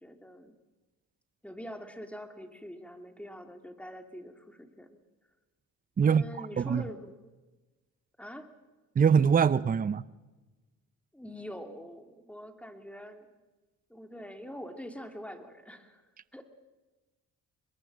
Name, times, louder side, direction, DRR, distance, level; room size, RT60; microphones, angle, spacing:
voice 1, 0.0-0.5 1.4-5.0 6.0-7.4 8.2-8.5 11.1-13.3 13.9-16.0 16.3-16.4, equal, 5° left, 2.7 m, -44 dB
voice 2, 6.0-6.8 9.0-10.0, right 7 dB, 30° right, 0.6 m, -24 dB
24.5 x 21.0 x 6.3 m
cardioid pair, 90°, 30 cm